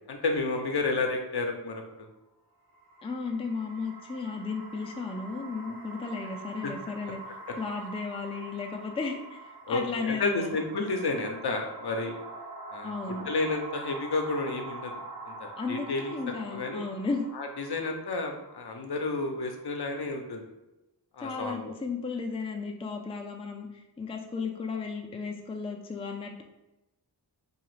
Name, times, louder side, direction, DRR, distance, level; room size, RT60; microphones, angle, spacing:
voice 1, 0.1-2.1 6.6-6.7 9.7-12.1 12.7-12.9 13.3-14.9 15.2-16.2 16.5-16.9 17.3-20.5 21.1-21.7, left 3 dB, 65° left, 4 dB, 0.6 m, -31 dB
sound 1, 2.6-19.8, right 2 dB, 60° right, 0.5 m, -45 dB
voice 2, 3.0-7.2 7.5-10.6 12.8-13.3 15.6-17.3 21.2-26.4, left 4 dB, 15° left, 1 dB, 0.3 m, -34 dB
2.8 x 2.4 x 3.1 m, 0.96 s
wide cardioid pair, 65°, 42 cm